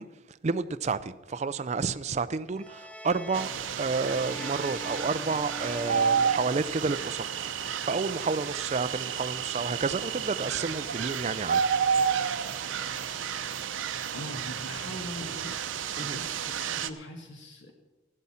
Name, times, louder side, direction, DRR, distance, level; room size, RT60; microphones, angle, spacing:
voice 1, 0.0-3.5 3.8-12.0 16.0-16.2, right 4 dB, 35° right, 0.4 m, -31 dB
sound 1, 2.5-7.2, left 1 dB, 5° left, 0.7 m, -43 dB
sound 2, 3.3-16.9, right 7 dB, 90° right, 0.7 m, -31 dB
voice 2, 14.1-15.5 16.0-17.7, left 1 dB, 75° left, 1.4 m, -41 dB
14.5 x 12.0 x 4.3 m
head